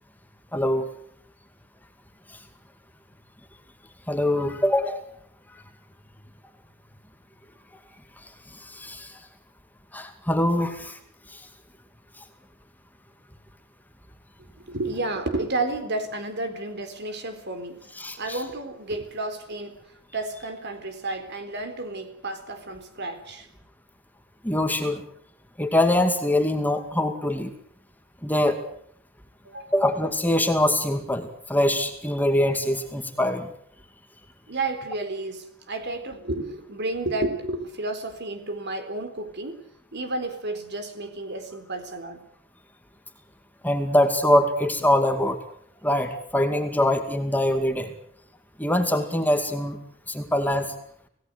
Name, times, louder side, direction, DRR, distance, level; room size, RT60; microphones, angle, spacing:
voice 1, 0.5-0.9 2.3-2.4 4.1-5.0 8.6-9.2 9.9-11.0 11.3-11.4 18.0-18.4 24.4-25.0 25.6-27.5 28.2-28.6 29.7-33.5 43.6-45.4 45.8-47.9 48.6-49.8 50.1-50.7, left 1 dB, 10° left, 5 dB, 2.3 m, -23 dB
voice 2, 14.7-17.9 18.2-19.8 20.1-23.5 29.4-29.7 34.5-39.6 39.9-42.2, right 2 dB, 55° right, 8 dB, 4.0 m, -31 dB
26.5 x 18.0 x 8.0 m, 0.67 s
head